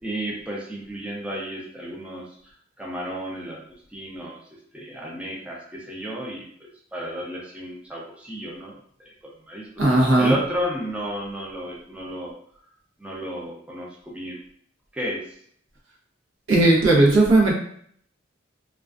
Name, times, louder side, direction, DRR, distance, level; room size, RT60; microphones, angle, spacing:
voice 1, 0.0-2.3 2.8-3.6 3.9-9.7 10.2-12.3 13.0-14.4 14.9-15.2, equal, 5° right, -3 dB, 0.4 m, -33 dB
voice 2, 9.8-10.3 16.5-17.5, right 2 dB, 80° right, -3 dB, 0.8 m, -16 dB
2.3 x 2.3 x 2.3 m, 0.62 s
head